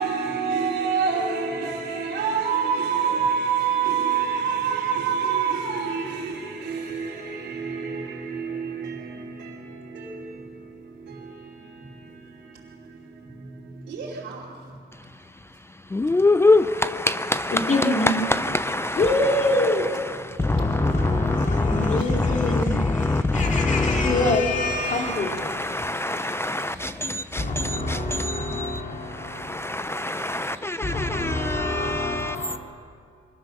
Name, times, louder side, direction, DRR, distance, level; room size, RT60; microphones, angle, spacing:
voice 1, 0.0-14.8 20.3-21.7 26.3-27.4 27.8-27.9, right 6 dB, 90° right, 2.9 m, -28 dB
voice 2, 15.9-24.4 24.8-32.4, left 2 dB, 15° left, 0.4 m, -25 dB
voice 3, 17.5-18.1 18.9-19.9 20.5-26.8 27.4-29.9 30.8-32.6, left 2 dB, 45° left, 2.7 m, -26 dB
24.0 x 20.0 x 6.6 m
cardioid pair, 125°, 18 cm